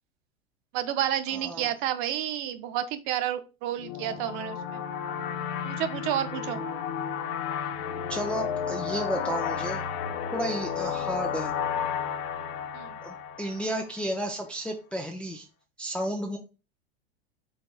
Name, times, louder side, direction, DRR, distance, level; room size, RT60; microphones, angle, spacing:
voice 1, 0.7-4.8 5.6-6.6 12.7-13.0, right 11 dB, 50° right, 10 dB, 0.6 m, -30 dB
voice 2, 1.3-1.7 6.5-6.8 8.1-9.8 10.3-11.5 13.0-15.5 15.8-16.4, right 1 dB, 5° left, 2 dB, 0.4 m, -32 dB
sound 1, 3.8-14.1, left 7 dB, 60° left, 0.6 m, -32 dB
4.2 x 3.3 x 2.3 m, 0.31 s
hypercardioid pair, 105°, 33 cm